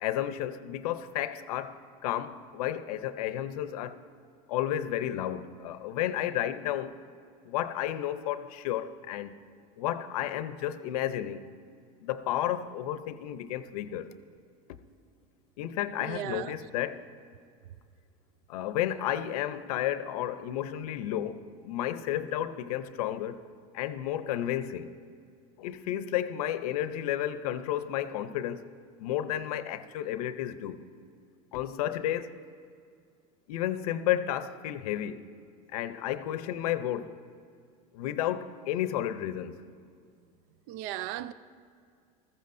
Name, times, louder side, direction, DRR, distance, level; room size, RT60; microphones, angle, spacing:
voice 1, 0.0-4.0 4.5-6.9 7.4-9.3 9.8-11.4 12.0-14.1 15.6-17.0 18.5-23.4 23.7-24.9 25.6-28.7 29.0-30.8 31.5-32.3 33.5-35.3 35.7-37.1 37.9-39.6, left 12 dB, 85° left, 0.7 m, -32 dB
voice 2, 16.0-16.6 40.7-41.3, right 13 dB, 60° right, 0.4 m, -36 dB
20.0 x 14.5 x 2.6 m
supercardioid pair, 135°, 19 cm